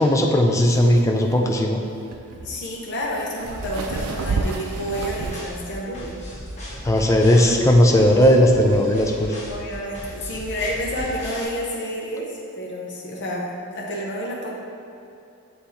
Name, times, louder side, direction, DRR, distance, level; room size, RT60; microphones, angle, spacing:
voice 1, 0.0-1.8 6.8-9.3, equal, 15° left, 1 dB, 0.4 m, -17 dB
sound 1, 0.6-5.4, right 3 dB, 75° right, 0.5 m, -30 dB
voice 2, 2.4-6.2 9.5-13.5 13.7-14.5, equal, 50° left, -3 dB, 0.7 m, -29 dB
sound 2, 3.4-11.4, equal, 30° left, 1.2 m, -37 dB
7.3 x 3.4 x 4.2 m, 2.7 s
head